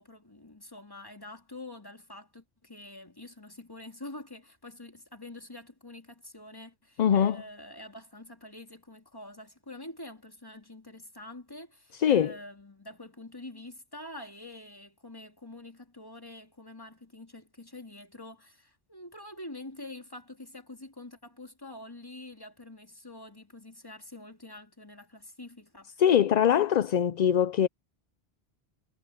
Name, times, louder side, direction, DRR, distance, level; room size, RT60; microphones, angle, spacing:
voice 1, 0.0-25.9, left 1 dB, 20° left, 2.8 m, -46 dB
voice 2, 7.0-7.4 11.9-12.3 26.0-27.7, left 9 dB, 55° left, 0.5 m, -23 dB
omnidirectional pair, 1.0 m